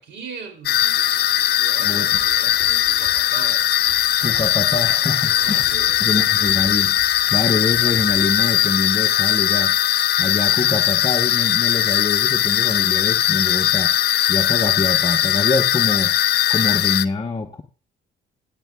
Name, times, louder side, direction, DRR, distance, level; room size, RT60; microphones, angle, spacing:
voice 1, 0.0-3.6 5.2-6.5, right 5 dB, 65° right, 2.8 m, -39 dB
sound 1, 0.7-17.1, left 12 dB, 55° left, 0.5 m, -19 dB
sound 2, 2.1-8.9, left 1 dB, 5° right, 2.1 m, -46 dB
voice 2, 4.2-5.7 6.0-6.9 7.3-9.7 10.2-13.9 14.3-16.1 16.5-17.6, left 3 dB, 25° left, 0.8 m, -25 dB
16.0 x 8.2 x 2.3 m
cardioid pair, 90°, 20 cm